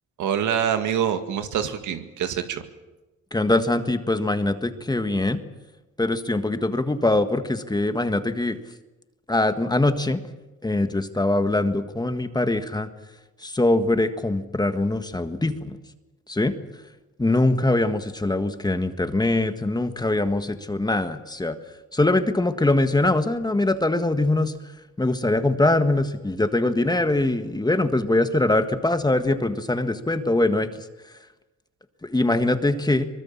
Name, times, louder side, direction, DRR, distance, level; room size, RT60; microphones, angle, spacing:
voice 1, 0.2-2.6, right 9 dB, 80° right, 8 dB, 2.1 m, -25 dB
voice 2, 3.3-5.4 6.0-8.6 9.3-10.2 10.6-12.9 13.4-15.8 16.3-16.6 17.2-21.6 21.9-24.5 25.0-30.7 32.0-33.1, left 2 dB, 15° left, 9 dB, 1.6 m, -22 dB
24.0 x 21.0 x 7.3 m, 1.1 s
cardioid pair, 90°, 30 cm